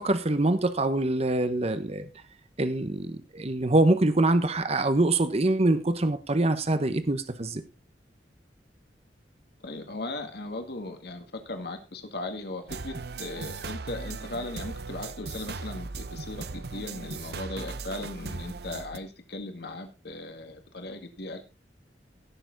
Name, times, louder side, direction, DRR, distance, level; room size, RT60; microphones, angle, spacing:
voice 1, 0.0-2.0 2.6-7.6, right 2 dB, 35° right, 11 dB, 1.0 m, -24 dB
voice 2, 9.6-21.5, left 2 dB, 65° left, 6 dB, 2.0 m, -38 dB
sound 1, 12.7-19.0, right 4 dB, 65° right, 0.8 m, -38 dB
17.0 x 7.0 x 3.9 m, 0.30 s
head